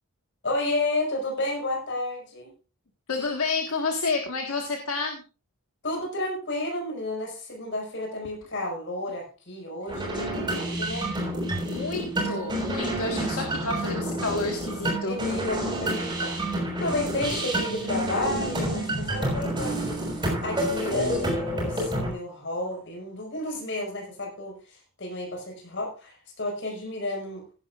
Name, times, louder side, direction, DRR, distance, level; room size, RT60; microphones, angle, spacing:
voice 1, 0.4-2.5 5.8-11.1 15.0-27.5, left 1 dB, 55° left, 1 dB, 5.5 m, -32 dB
voice 2, 3.1-5.2 11.7-15.2, left 3 dB, 70° left, 2 dB, 1.6 m, -30 dB
sound 1, 9.9-22.1, right 1 dB, 20° right, 5.7 m, -29 dB
16.5 x 11.0 x 2.5 m, 0.34 s
head